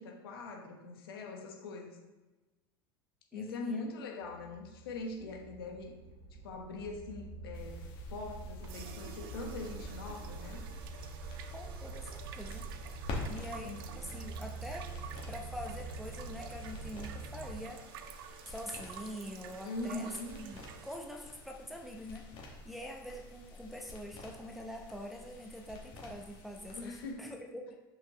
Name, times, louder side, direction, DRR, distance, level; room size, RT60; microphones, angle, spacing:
voice 1, 0.0-2.0 3.3-6.0 6.3-7.8 8.1-10.7 13.6-13.8 19.6-20.4 26.7-27.3, left 3 dB, 80° left, 2 dB, 1.1 m, -42 dB
voice 2, 3.3-3.9 5.2-5.3 11.5-12.7 13.3-14.9 15.3-17.8 18.4-20.1 20.4-27.7, equal, ahead, 0 dB, 0.7 m, -45 dB
sound 1, 4.2-17.6, right 3 dB, 35° right, 1.7 m, -46 dB
sound 2, 7.5-27.1, left 1 dB, 45° left, 1.6 m, -48 dB
sound 3, 8.6-21.0, right 9 dB, 75° right, 0.5 m, -51 dB
6.0 x 5.2 x 3.1 m, 1.2 s
hypercardioid pair, 90°, 12 cm